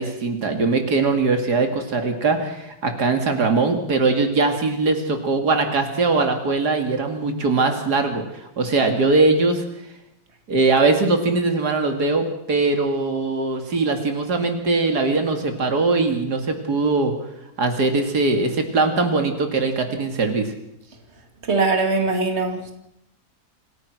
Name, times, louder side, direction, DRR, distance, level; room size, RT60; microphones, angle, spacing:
voice 1, 0.0-9.6 10.5-17.1 17.6-20.5, right 3 dB, 80° right, 6 dB, 2.9 m, -21 dB
voice 2, 21.5-22.7, right 3 dB, 40° right, 5 dB, 2.8 m, -21 dB
26.5 x 16.0 x 6.1 m, 0.82 s
omnidirectional pair, 1.7 m